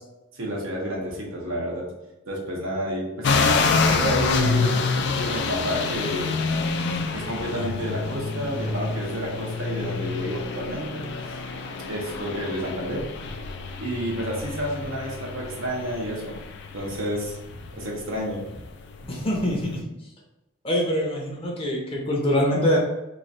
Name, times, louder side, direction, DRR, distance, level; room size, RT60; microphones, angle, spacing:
voice 1, 0.3-1.9 2.3-3.4 3.7-4.8 5.2-6.4 7.1-11.3 11.8-13.1 13.8-16.4 16.7-18.6, equal, 80° right, -2 dB, 1.0 m, -30 dB
sound 1, 3.2-19.8, left 4 dB, 55° left, 0.3 m, -28 dB
voice 2, 19.1-19.8 20.6-22.8, equal, 25° left, -2 dB, 0.7 m, -24 dB
3.1 x 2.5 x 4.0 m, 0.95 s
head